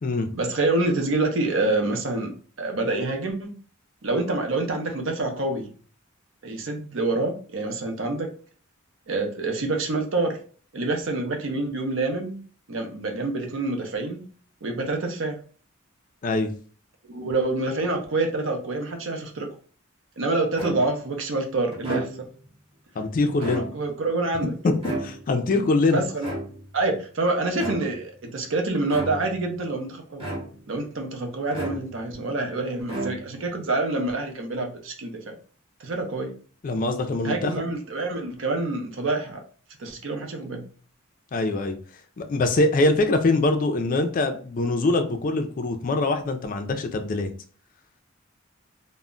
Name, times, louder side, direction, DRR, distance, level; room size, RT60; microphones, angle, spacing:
voice 1, 0.3-3.5 4.0-5.7 6.4-8.3 9.1-10.4 10.7-12.4 12.7-14.3 14.6-15.4 17.0-19.5 20.2-22.3 23.5-24.6 25.9-26.3 26.7-30.2 30.7-35.3 35.8-36.3 37.2-39.4 39.8-40.7, right 2 dB, 65° right, 3 dB, 0.6 m, -27 dB
sound 1, 20.6-21.1 21.7-22.5 23.3-24.1 24.8-25.5 26.2-26.9 27.5-28.1 28.9-29.5 30.2-30.8 31.5-32.2 32.8-33.6, right 2 dB, 25° right, 0.8 m, -33 dB
voice 2, 23.0-23.7 24.6-26.0 36.6-37.5 41.3-41.8 42.2-47.3, left 2 dB, 40° left, 6 dB, 0.4 m, -23 dB
2.1 x 2.1 x 3.7 m, 0.42 s
head